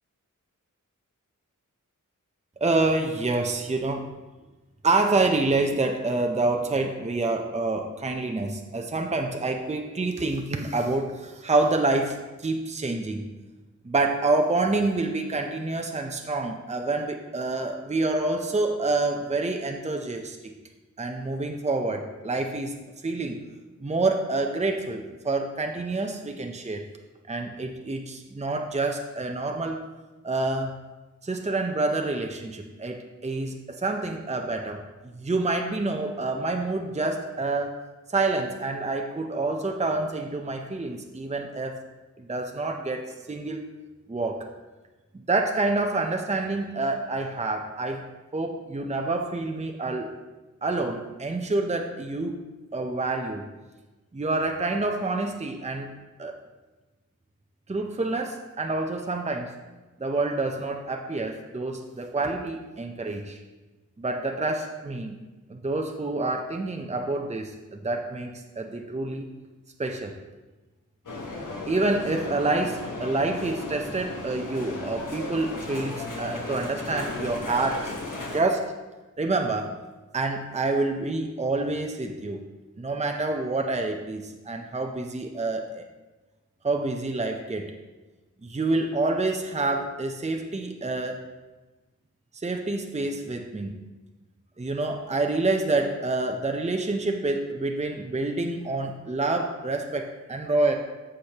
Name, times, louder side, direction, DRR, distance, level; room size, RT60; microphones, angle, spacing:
voice 1, 2.6-4.1 4.8-13.3 13.8-20.5 21.0-22.8 23.0-23.4 23.8-26.8 27.3-29.8 30.2-30.8 31.2-37.8 38.1-41.8 42.2-43.6 44.1-44.5 45.3-48.0 48.3-50.1 50.6-52.4 52.7-53.5 54.1-56.4 57.7-59.5 60.0-63.4 64.0-65.2 65.5-69.3 69.8-70.1 71.7-77.9 78.3-78.7 79.2-79.7 80.1-82.4 82.8-85.8 86.6-87.7 88.4-91.3 92.4-93.9 94.6-100.7, right 2 dB, 20° right, 3 dB, 0.7 m, -27 dB
sound 1, 71.1-78.4, left 2 dB, 70° left, 1.4 m, -35 dB
14.5 x 5.1 x 2.9 m, 1.2 s
wide cardioid pair, 70°, 32 cm